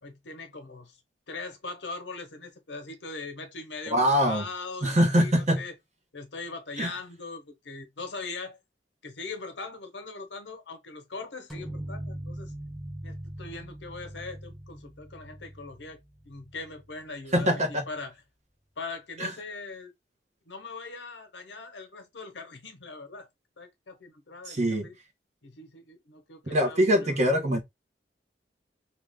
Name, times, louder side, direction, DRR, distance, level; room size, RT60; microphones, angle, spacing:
voice 1, 0.0-1.0 1.3-5.7 6.1-8.6 9.0-12.5 13.0-18.1 18.8-19.9 20.5-23.3 23.6-25.0 25.4-27.4, left 3 dB, 85° left, 0.9 m, -41 dB
voice 2, 3.9-4.4 4.8-5.6 6.8-6.9 17.3-17.8 19.2-19.3 24.5-24.9 26.5-27.6, equal, 40° right, 1.0 m, -23 dB
sound 1, 11.5-17.0, right 1 dB, ahead, 0.7 m, -41 dB
2.9 x 2.3 x 3.4 m
head